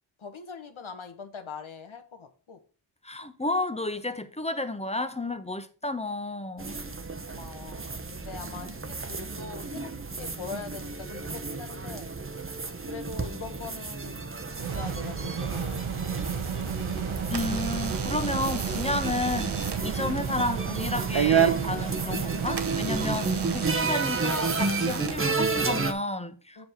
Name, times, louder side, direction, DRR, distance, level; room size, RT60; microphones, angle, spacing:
voice 1, 0.2-2.6 6.8-9.9 10.2-12.1 12.8-16.2 26.6-26.7, left 5 dB, 70° left, 1.4 m, -42 dB
voice 2, 3.0-6.8 17.3-26.7, left 2 dB, 15° left, 0.9 m, -31 dB
sound 1, 6.6-25.9, right 3 dB, 25° right, 1.0 m, -33 dB
sound 2, 14.5-23.9, right 6 dB, 70° right, 1.3 m, -32 dB
Door / Alarm, 16.6-25.8, right 8 dB, 55° right, 0.9 m, -32 dB
7.8 x 5.8 x 4.5 m
wide cardioid pair, 95°, 50 cm